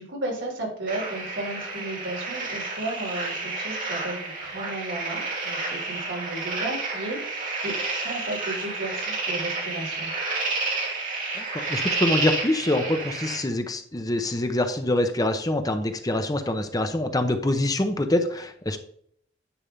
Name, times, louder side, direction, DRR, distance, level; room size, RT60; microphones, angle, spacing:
voice 1, 0.0-10.1, right 2 dB, 90° right, 1 dB, 3.1 m, -34 dB
sound 1, 0.9-13.4, right 3 dB, 45° right, 2.5 m, -30 dB
voice 2, 11.4-18.8, left 1 dB, 20° left, 7 dB, 0.7 m, -25 dB
10.0 x 3.5 x 5.4 m, 0.65 s
head